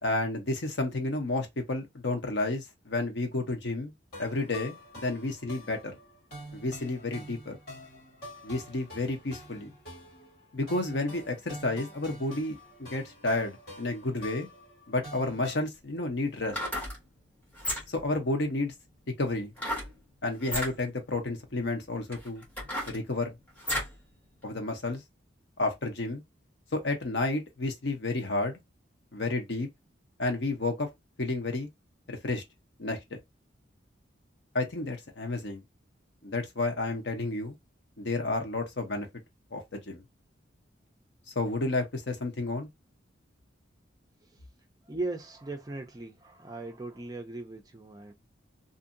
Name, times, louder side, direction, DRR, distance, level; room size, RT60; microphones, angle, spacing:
voice 1, 0.0-3.9 4.2-6.0 6.5-7.6 8.4-9.7 10.5-14.5 14.9-16.6 17.9-18.7 19.2-19.5 20.2-22.4 22.9-23.3 24.4-25.0 25.6-26.2 26.7-28.6 29.1-29.7 30.2-30.9 31.2-31.7 32.1-32.4 32.8-33.0 34.5-35.6 36.2-37.6 38.0-39.1 39.5-40.0 41.4-42.7, left 2 dB, 60° left, 0.9 m, -31 dB
sound 1, 4.1-15.6, equal, 45° left, 2.0 m, -47 dB
sound 2, 16.4-17.0 17.5-18.1 19.6-19.9 20.4-20.7 21.5-21.6 22.1-24.0 24.4-24.5, equal, 5° left, 1.2 m, -33 dB
voice 2, 44.8-48.1, right 2 dB, 20° right, 0.4 m, -38 dB
2.7 x 2.6 x 2.5 m
head